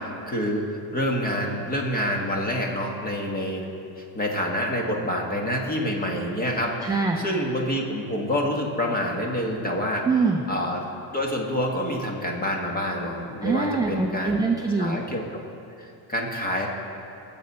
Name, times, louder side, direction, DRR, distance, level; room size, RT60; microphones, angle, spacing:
voice 1, 0.3-3.6 4.0-10.1 10.5-10.8 11.1-14.4 14.8-15.2 15.8-16.7, equal, 20° left, 0 dB, 1.5 m, -27 dB
voice 2, 6.8-7.2 10.0-10.4 13.4-15.0, right 4 dB, 10° right, 1 dB, 0.3 m, -24 dB
19.5 x 7.6 x 4.2 m, 2.8 s
cardioid pair, 145°, 48 cm